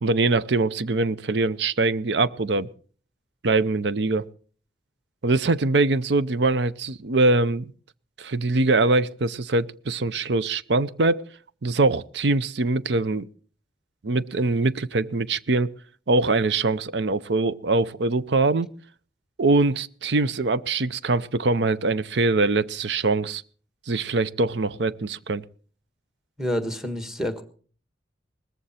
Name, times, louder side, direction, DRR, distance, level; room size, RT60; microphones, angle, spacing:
voice 1, 0.0-2.7 3.4-4.3 5.2-7.7 8.2-11.2 11.6-13.3 14.0-15.7 16.1-18.7 19.4-23.4 23.9-25.4, right 3 dB, 65° right, 0.6 m, -23 dB
voice 2, 26.4-27.4, equal, 5° right, 1.5 m, -28 dB
19.5 x 14.5 x 4.3 m
head